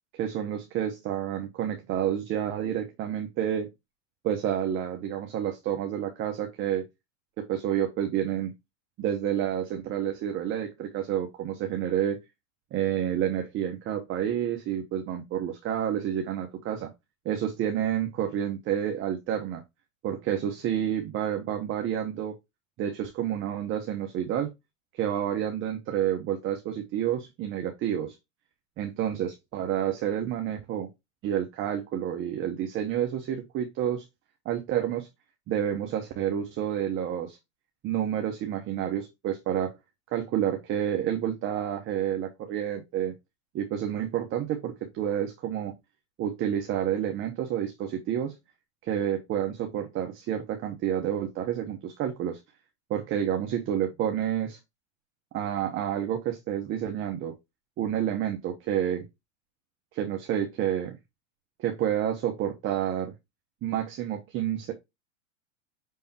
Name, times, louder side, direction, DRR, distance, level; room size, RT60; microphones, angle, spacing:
voice 1, 0.1-3.7 4.2-6.9 7.4-8.5 9.0-12.2 12.7-16.9 17.2-19.6 20.0-22.3 22.8-24.5 24.9-28.2 28.8-30.9 31.2-34.0 34.4-35.1 35.5-37.4 37.8-39.7 40.1-43.1 43.5-45.7 46.2-48.3 48.8-52.4 52.9-54.6 55.3-57.3 57.8-59.0 59.9-61.0 61.6-63.1 63.6-64.7, right 10 dB, 30° right, 0.9 m, -29 dB
5.5 x 3.5 x 2.8 m
hypercardioid pair, 115°, 39 cm